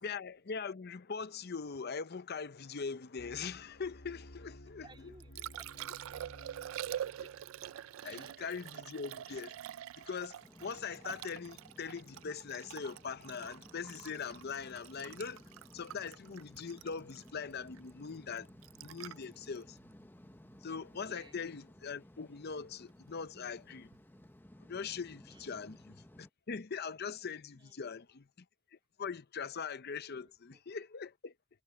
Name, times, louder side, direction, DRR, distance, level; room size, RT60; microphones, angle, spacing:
voice 1, 0.0-4.9 7.2-7.3 8.0-9.6 10.0-15.4 15.7-18.5 18.8-19.8 20.6-23.9 24.7-28.3 29.0-31.3, left 5 dB, 50° left, 0.7 m, -41 dB
sound 1, 3.2-8.5, left 1 dB, 70° left, 2.4 m, -55 dB
voice 2, 4.8-6.3 7.9-8.3 20.9-21.4 25.3-25.7 27.5-28.0 30.2-30.6, right 3 dB, 25° right, 3.5 m, -60 dB
Liquid, 4.9-21.0 23.8-24.0, right 11 dB, 70° right, 0.3 m, -46 dB
sound 2, 10.4-26.3, left 1 dB, 10° left, 0.7 m, -57 dB
head